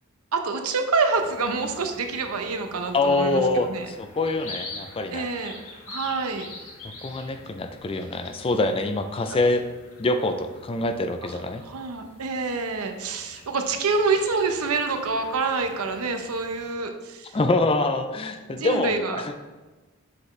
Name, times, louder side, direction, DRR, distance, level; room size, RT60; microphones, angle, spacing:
voice 1, 0.3-3.9 5.1-5.6 5.9-6.5 11.2-17.4 18.6-19.4, right 4 dB, 85° right, 6 dB, 0.7 m, -27 dB
sound 1, 1.1-16.7, left 2 dB, 75° left, 1.2 m, -45 dB
voice 2, 2.9-5.3 7.0-9.6 10.0-11.6 17.3-19.4, left 2 dB, 25° left, 8 dB, 0.4 m, -25 dB
7.6 x 4.1 x 3.2 m, 1.2 s
head